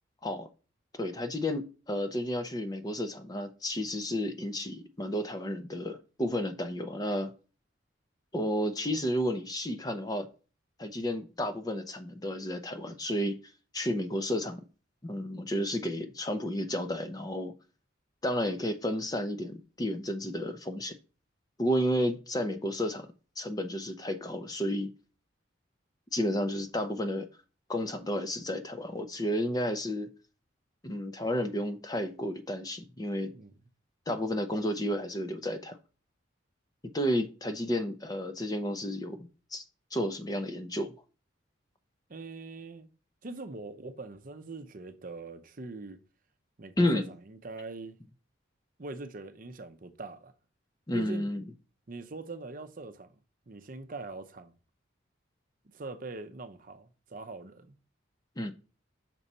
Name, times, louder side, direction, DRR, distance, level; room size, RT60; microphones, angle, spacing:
voice 1, 0.9-7.3 8.3-10.3 10.8-13.4 13.7-14.6 15.0-17.5 18.2-21.0 21.6-23.1 23.4-24.9 26.1-27.3 27.7-30.1 30.8-33.3 34.1-35.8 36.9-39.6 39.9-40.9 46.8-47.1 50.9-51.4 58.4-58.5, equal, 20° left, 0.6 m, -32 dB
voice 2, 42.1-42.9 43.2-46.0 46.6-48.0 48.8-50.3 50.9-51.3 51.9-53.1 53.5-54.5 55.7-57.8, right 3 dB, 45° right, 0.6 m, -42 dB
6.0 x 4.1 x 5.4 m
head